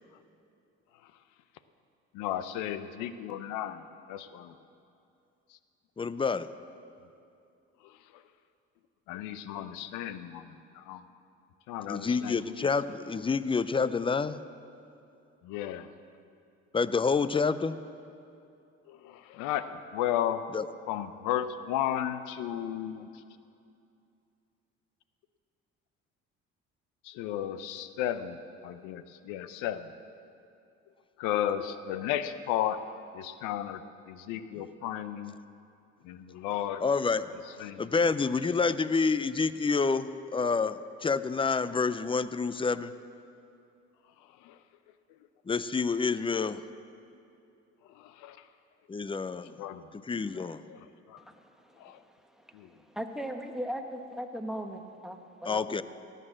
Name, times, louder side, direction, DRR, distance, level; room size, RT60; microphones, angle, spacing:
voice 1, 2.1-4.5 7.8-8.0 9.1-11.0 11.7-12.7 15.4-15.9 18.9-20.4 20.9-23.1 27.0-28.4 28.6-29.9 31.2-32.8 33.1-35.3 36.0-36.8 37.6-37.9 44.4-44.6 48.0-48.4 49.6-49.9 50.7-51.2 51.8-52.0 52.5-52.7, left 11 dB, 85° left, 0.7 m, -34 dB
voice 2, 6.0-6.5 11.9-14.4 16.7-17.8 20.5-20.7 36.8-37.3 37.8-42.9 45.5-46.6 48.9-49.5 50.1-50.6 55.5-55.8, left 4 dB, 15° left, 0.5 m, -28 dB
voice 3, 51.3-51.9 52.9-55.8, equal, ahead, 1.2 m, -38 dB
17.0 x 6.7 x 7.5 m
supercardioid pair, 65°, 30 cm